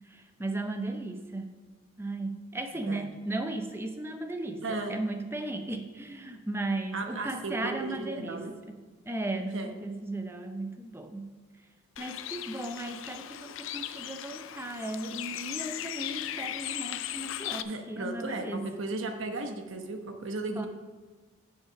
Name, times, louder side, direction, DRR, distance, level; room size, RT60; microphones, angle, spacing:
voice 1, 0.1-1.6 2.0-8.8 9.0-11.3 12.0-18.7 20.6-20.7, right 2 dB, 10° right, 6 dB, 0.6 m, -36 dB
voice 2, 4.6-5.0 6.9-8.5 9.5-9.7 17.6-20.7, right 3 dB, 65° right, 5 dB, 1.0 m, -35 dB
Bird, 12.0-17.6, left 12 dB, 65° left, 0.4 m, -37 dB
7.4 x 6.2 x 5.9 m, 1.3 s
head